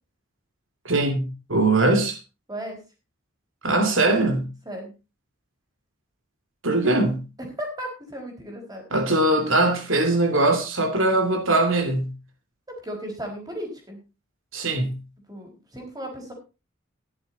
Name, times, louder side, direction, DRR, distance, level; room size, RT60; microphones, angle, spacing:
voice 1, 0.8-2.2 3.6-4.5 6.6-7.2 8.9-12.1 14.5-14.9, right 2 dB, 75° right, 2.7 m, -21 dB
voice 2, 2.5-2.8 4.6-4.9 7.5-8.8 12.7-14.0 15.3-16.3, equal, 20° right, 4.7 m, -35 dB
14.0 x 11.0 x 4.2 m
head